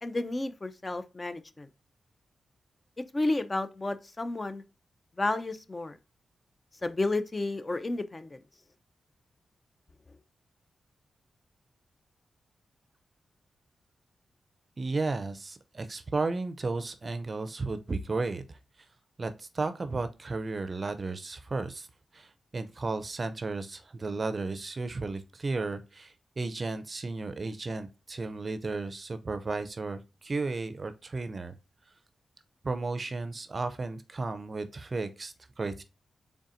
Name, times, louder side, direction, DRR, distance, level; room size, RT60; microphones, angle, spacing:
voice 1, 0.0-1.7 3.1-4.6 5.2-6.0 6.8-8.4, left 2 dB, 30° left, 0.5 m, -31 dB
voice 2, 14.8-18.6 19.2-21.9 22.1-31.6 32.6-35.8, right 3 dB, 45° right, 0.5 m, -34 dB
4.0 x 3.5 x 2.5 m
cardioid pair, 55°, 0 cm